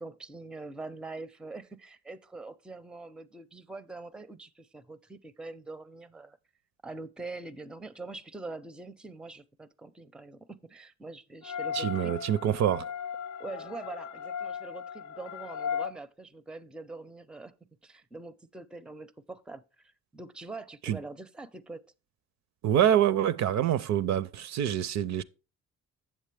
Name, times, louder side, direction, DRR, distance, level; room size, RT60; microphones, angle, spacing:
voice 1, 0.0-6.4 6.8-12.1 13.4-17.5 17.8-21.8, right 3 dB, 5° right, 0.4 m, -44 dB
sound 1, 11.4-15.9, left 7 dB, 75° left, 0.5 m, -36 dB
voice 2, 11.7-12.9 20.8-21.0 22.6-25.2, right 10 dB, 65° right, 0.5 m, -26 dB
7.5 x 7.2 x 3.2 m
cardioid pair, 90°, 30 cm